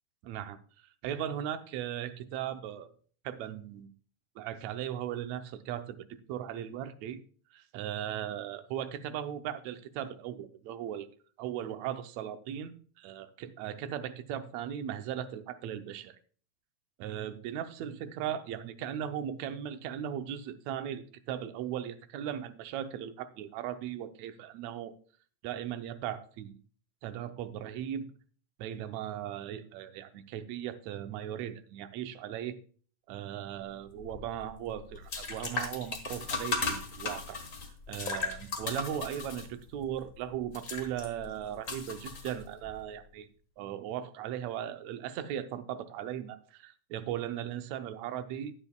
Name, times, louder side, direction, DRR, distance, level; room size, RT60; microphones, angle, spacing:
voice 1, 0.2-0.6 1.0-2.9 3.2-3.9 4.4-7.2 7.5-11.1 11.4-16.1 17.0-24.9 25.4-26.6 27.0-28.1 28.6-32.6 33.1-37.4 37.9-43.3 43.6-48.5, right 10 dB, 75° right, 9 dB, 1.8 m, -38 dB
sound 1, 33.9-42.8, left 4 dB, 55° left, 0.9 m, -37 dB
13.5 x 9.4 x 2.3 m, 0.42 s
omnidirectional pair, 3.7 m